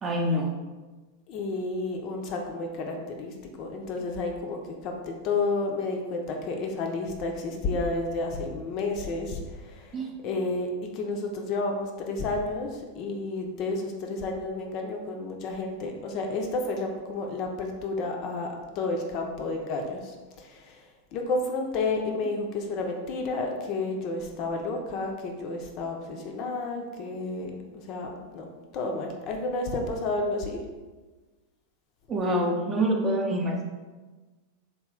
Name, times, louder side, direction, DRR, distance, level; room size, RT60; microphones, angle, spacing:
voice 1, 0.0-0.5 9.9-10.1 32.1-33.6, right 1 dB, 25° right, 1 dB, 0.5 m, -26 dB
voice 2, 1.3-10.0 10.2-28.5 28.7-30.6, left 3 dB, 40° left, 2 dB, 0.4 m, -31 dB
3.1 x 2.4 x 3.6 m, 1.3 s
figure-of-eight pair, 90°, 0 cm